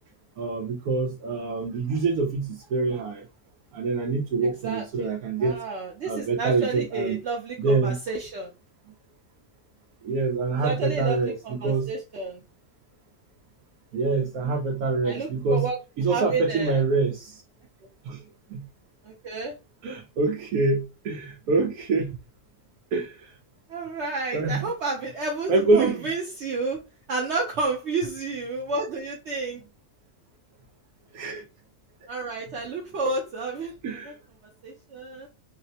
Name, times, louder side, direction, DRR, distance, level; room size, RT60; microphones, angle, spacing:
voice 1, 0.4-3.3 3.7-5.6 6.1-7.2 7.6-8.0 10.0-11.9 13.9-15.7 16.0-17.4 18.0-18.2 18.5-18.6 19.8-22.2 22.9-23.4 24.3-24.7 25.5-26.1 31.1-31.4 33.8-34.1, right 3 dB, 85° right, 1.1 m, -25 dB
voice 2, 4.6-5.1 5.4-8.5 10.6-12.4 15.0-15.8 16.1-16.8 19.0-19.5 23.7-26.8 27.1-29.6 32.1-33.7 34.0-34.1 34.6-35.3, right 3 dB, 60° right, 0.8 m, -30 dB
4.0 x 2.1 x 2.7 m
omnidirectional pair, 1.5 m